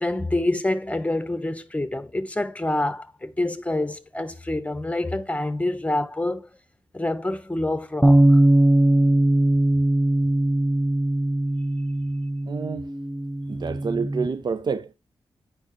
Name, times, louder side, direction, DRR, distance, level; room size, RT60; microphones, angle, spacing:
voice 1, 0.0-6.5 6.9-8.4, left 2 dB, 15° left, 0.9 m, -27 dB
Bass guitar, 8.0-14.3, right 1 dB, 5° right, 0.4 m, -20 dB
voice 2, 12.5-12.9 13.5-14.9, right 5 dB, 55° right, 0.6 m, -28 dB
9.9 x 4.5 x 3.1 m
cardioid pair, 75°, 9 cm